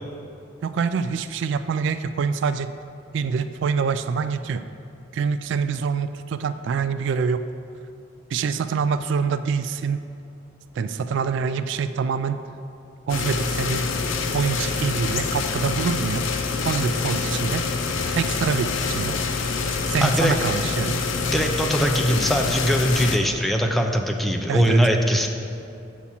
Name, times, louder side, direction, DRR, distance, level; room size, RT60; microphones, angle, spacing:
voice 1, 0.6-2.7 3.1-4.6 5.1-7.5 8.3-10.0 10.8-12.4 13.1-13.9 14.3-16.3 16.6-17.6 18.1-19.2 19.9-21.0 24.5-24.8, right 5 dB, 65° right, 11 dB, 0.3 m, -25 dB
sound 1, 13.1-23.2, left 4 dB, 75° left, 0.6 m, -26 dB
voice 2, 20.0-20.4 21.3-25.3, equal, ahead, 3 dB, 0.5 m, -21 dB
8.4 x 5.9 x 4.2 m, 2.6 s
head